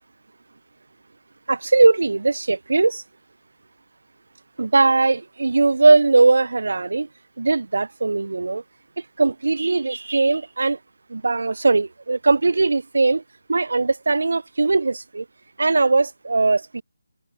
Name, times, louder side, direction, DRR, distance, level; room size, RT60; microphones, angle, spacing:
voice 1, 1.5-3.0 4.6-7.1 7.4-8.6 9.2-10.8 11.1-13.2 13.5-15.2 15.6-16.8, right 3 dB, 75° right, 7.5 m, -19 dB
figure-of-eight pair, 170°, 0 cm